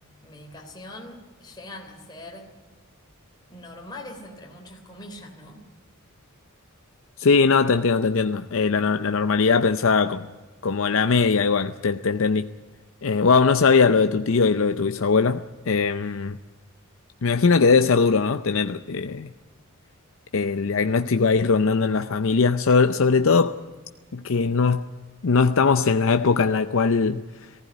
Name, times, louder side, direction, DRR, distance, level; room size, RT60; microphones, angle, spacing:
voice 1, 0.2-2.5 3.5-5.6, left 1 dB, 20° left, 3.2 m, -42 dB
voice 2, 7.2-10.3 10.6-12.5 13.0-16.4 17.2-19.3 20.3-23.6 24.1-24.9 25.2-27.2, left 4 dB, 60° left, 0.6 m, -20 dB
19.0 x 15.5 x 9.7 m
head